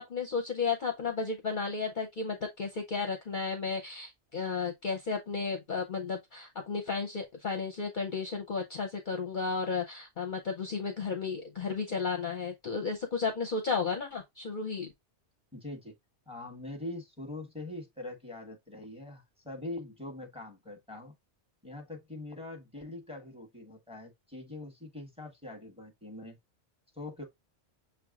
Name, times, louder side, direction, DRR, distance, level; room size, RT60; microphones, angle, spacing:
voice 1, 0.0-14.9, left 5 dB, 50° left, 0.8 m, -33 dB
voice 2, 15.5-15.9 16.3-21.1 21.6-26.4 26.9-27.2, left 2 dB, 5° right, 1.3 m, -43 dB
6.3 x 3.2 x 2.3 m
omnidirectional pair, 1.2 m